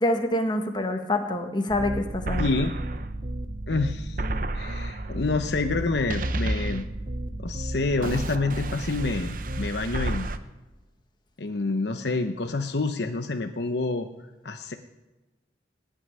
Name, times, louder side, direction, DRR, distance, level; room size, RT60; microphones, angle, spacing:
voice 1, 0.0-2.5, left 1 dB, 25° left, 5 dB, 1.5 m, -26 dB
sound 1, 1.7-10.4, right 1 dB, 50° right, 0.9 m, -31 dB
voice 2, 2.4-2.7 3.7-4.2 4.5-6.8 7.4-10.3 11.4-14.1 14.4-14.7, left 3 dB, 70° left, 7 dB, 0.9 m, -28 dB
19.0 x 6.3 x 9.6 m, 1.1 s
head